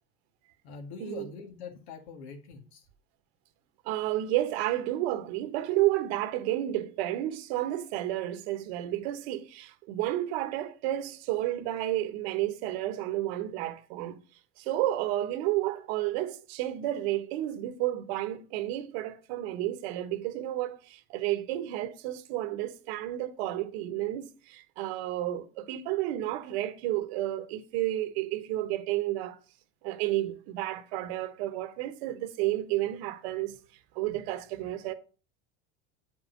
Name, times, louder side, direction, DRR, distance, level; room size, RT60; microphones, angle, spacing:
voice 1, 0.6-2.9, left 5 dB, 80° left, 2.0 m, -44 dB
voice 2, 3.8-14.2 14.6-29.4 29.8-33.6 33.9-34.9, right 14 dB, 70° right, 1.2 m, -31 dB
8.9 x 5.5 x 5.1 m
supercardioid pair, 115°, 33 cm